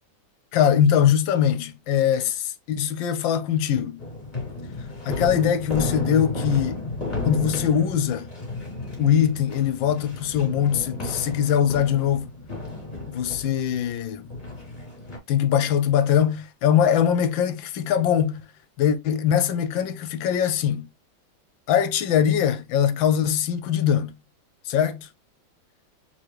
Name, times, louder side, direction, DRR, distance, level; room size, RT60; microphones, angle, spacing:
voice 1, 0.5-4.0 5.0-6.8 7.2-8.3 9.0-12.3 13.1-14.3 15.3-18.4 18.8-20.9 21.7-24.1 24.7-25.1, left 9 dB, 75° left, 1.4 m, -22 dB
sound 1, 4.0-15.2, left 2 dB, 20° left, 3.0 m, -33 dB
4.8 x 3.6 x 3.0 m
omnidirectional pair, 2.1 m